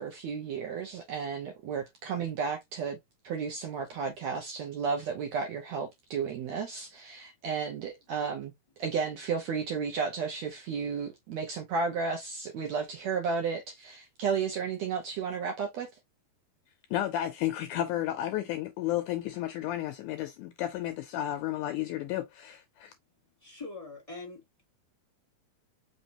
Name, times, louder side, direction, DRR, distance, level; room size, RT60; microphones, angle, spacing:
voice 1, 0.0-3.0 3.2-8.5 8.8-15.9, right 5 dB, 70° right, 1.7 m, -33 dB
voice 2, 16.9-22.9, left 13 dB, 80° left, 1.8 m, -32 dB
voice 3, 23.4-24.6, left 3 dB, 20° left, 0.9 m, -43 dB
5.3 x 3.1 x 2.8 m
omnidirectional pair, 4.1 m